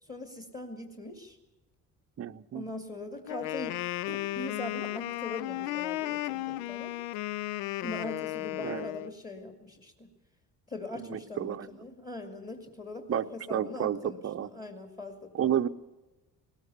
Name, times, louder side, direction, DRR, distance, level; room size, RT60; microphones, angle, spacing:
voice 1, 0.0-1.4 2.5-3.8 4.1-6.9 7.8-10.1 10.7-15.6, left 2 dB, 15° left, 5 dB, 2.4 m, -41 dB
voice 2, 2.2-2.6 8.6-8.9 11.0-11.7 13.1-14.5 15.3-15.7, right 10 dB, 30° right, 10 dB, 0.8 m, -31 dB
Wind instrument woodwind instrument, 3.3-9.1, left 16 dB, 60° left, 0.6 m, -34 dB
20.0 x 19.0 x 6.8 m, 1.1 s
figure-of-eight pair, 45°, 50 cm